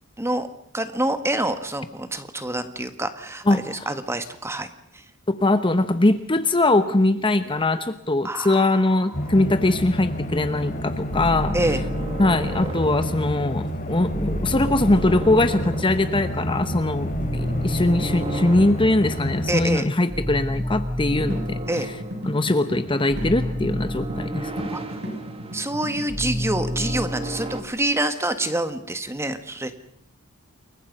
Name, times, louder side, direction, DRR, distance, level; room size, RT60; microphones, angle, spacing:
voice 1, 0.2-0.5 0.7-4.7 8.2-8.8 11.5-11.8 19.5-19.9 21.7-21.9 24.7-24.8 25.5-29.8, right 1 dB, 15° right, 9 dB, 1.8 m, -26 dB
voice 2, 3.5-3.9 5.4-11.5 12.2-21.6 22.3-24.5, left 2 dB, 25° left, 11 dB, 1.0 m, -21 dB
sound 1, 9.1-19.7, equal, 40° left, 5.4 m, -30 dB
sound 2, 11.1-13.6 14.1-16.6 17.1-19.5 20.1-22.4 23.1-25.8 26.1-27.6, equal, 30° right, 2.4 m, -30 dB
sound 3, 21.1-26.1, equal, 60° right, 7.9 m, -35 dB
29.0 x 22.5 x 5.5 m, 0.69 s
head